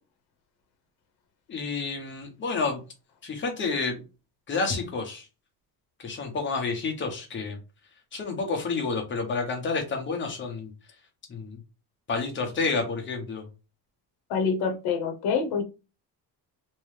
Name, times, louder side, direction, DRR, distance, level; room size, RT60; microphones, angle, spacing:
voice 1, 1.5-2.8 3.2-4.0 4.5-5.3 6.0-7.6 8.1-10.7 11.3-11.6 12.1-13.5, left 4 dB, 30° left, 1.0 m, -29 dB
voice 2, 14.3-15.6, left 5 dB, 70° left, 1.0 m, -26 dB
3.1 x 3.0 x 3.3 m
cardioid pair, 180°, 40 cm